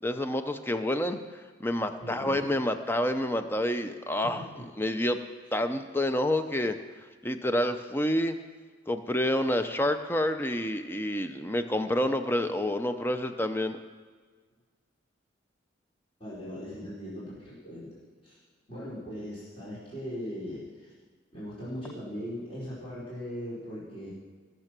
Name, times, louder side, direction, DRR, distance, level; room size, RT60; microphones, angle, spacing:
voice 1, 0.0-4.4 4.8-5.2 5.5-6.8 7.2-8.4 8.9-13.8, left 1 dB, 10° left, 8 dB, 0.6 m, -28 dB
voice 2, 2.0-2.5 4.2-4.7 16.2-18.3 18.7-20.9 21.3-24.1, equal, 30° left, -11 dB, 4.2 m, -39 dB
20.0 x 6.7 x 6.0 m, 1.5 s
head